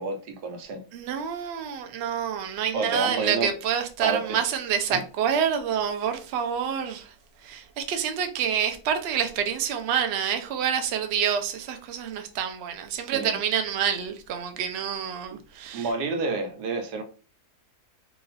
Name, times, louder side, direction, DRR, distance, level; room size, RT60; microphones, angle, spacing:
voice 1, 0.0-0.8 2.7-3.5 4.0-4.4 4.9-5.0 13.0-13.4 15.3-15.4 15.7-17.0, right 3 dB, 85° right, 1.3 m, -29 dB
voice 2, 0.9-7.1 7.4-15.9, right 8 dB, 65° right, 0.6 m, -27 dB
2.9 x 2.4 x 4.0 m
omnidirectional pair, 1.7 m